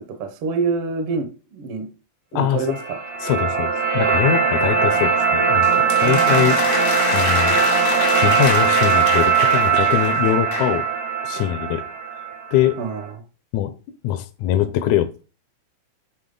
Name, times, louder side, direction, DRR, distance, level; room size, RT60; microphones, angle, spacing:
voice 1, 0.2-1.9 2.3-3.0 6.0-6.5 12.8-13.1, right 4 dB, 70° right, 6 dB, 1.4 m, -26 dB
voice 2, 2.3-2.7 3.2-6.6 7.1-7.6 8.2-10.8 11.2-11.9 12.5-12.8 13.5-13.7 14.0-15.2, left 11 dB, 80° left, 10 dB, 1.8 m, -22 dB
sound 1, 2.6-12.7, right 6 dB, 85° right, 4.3 m, -20 dB
sound 2, 5.6-10.8, left 2 dB, 55° left, 0.5 m, -26 dB
9.4 x 3.6 x 3.7 m, 0.35 s
omnidirectional pair, 3.7 m